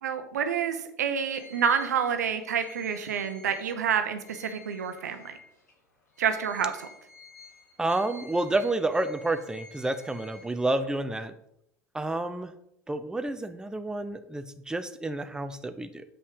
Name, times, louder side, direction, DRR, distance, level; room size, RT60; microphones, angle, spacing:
voice 1, 0.0-5.4 6.2-6.9, right 7 dB, 80° right, 9 dB, 0.8 m, -28 dB
sound 1, 1.3-5.7 6.1-11.0, left 2 dB, 85° left, 1.9 m, -51 dB
voice 2, 7.8-11.3 11.9-12.5 12.9-16.0, right 2 dB, 10° right, 9 dB, 0.7 m, -29 dB
7.4 x 5.6 x 4.8 m, 0.75 s
hypercardioid pair, 75°, 9 cm